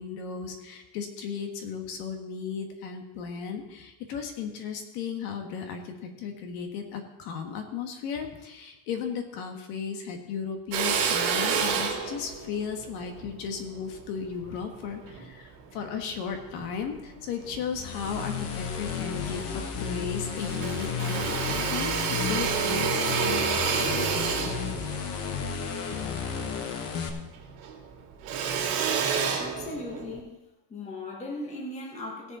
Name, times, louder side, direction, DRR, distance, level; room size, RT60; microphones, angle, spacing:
voice 1, 0.0-22.9, left 6 dB, 55° left, 4 dB, 1.6 m, -35 dB
Drill, 10.7-15.3 15.8-17.0 17.4-18.4 18.7-18.8 19.1-20.1 20.4-27.0 27.3-30.2, right 6 dB, 85° right, 2.7 m, -29 dB
sound 1, 17.7-27.1, left 6 dB, 35° left, 1.0 m, -33 dB
voice 2, 29.4-30.4 30.7-32.4, left 2 dB, 15° left, 0 dB, 1.4 m, -38 dB
18.0 x 6.7 x 4.3 m, 1.0 s
cardioid pair, 180°, 44 cm